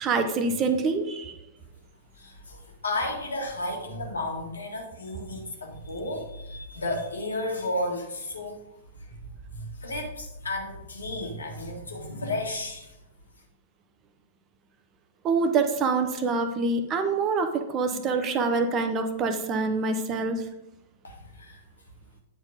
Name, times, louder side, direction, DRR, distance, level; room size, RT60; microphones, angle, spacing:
voice 1, 0.0-1.4 15.2-20.4, right 4 dB, 25° right, 7 dB, 0.9 m, -25 dB
voice 2, 2.2-8.6 8.9-9.2 9.5-13.0 21.0-21.6, left 1 dB, 70° left, 1 dB, 1.8 m, -33 dB
9.2 x 4.5 x 5.1 m, 0.91 s
figure-of-eight pair, 105°, 0 cm